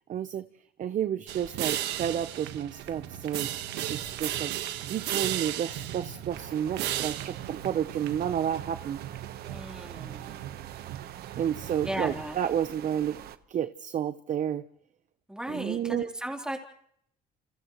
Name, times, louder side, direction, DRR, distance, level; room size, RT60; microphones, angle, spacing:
voice 1, 0.1-0.5 0.8-3.5 3.9-9.0 11.4-13.2 13.5-14.6 15.5-16.1, right 9 dB, 50° right, 11 dB, 0.8 m, -31 dB
sound 1, 1.3-12.2, right 12 dB, 85° right, 1.4 m, -36 dB
sound 2, 6.3-13.4, right 11 dB, 65° right, 1.1 m, -45 dB
voice 2, 9.4-10.4 11.8-12.4 15.3-16.6, right 1 dB, 5° right, 2 dB, 3.5 m, -36 dB
29.0 x 29.0 x 3.1 m, 0.70 s
cardioid pair, 110°, 17 cm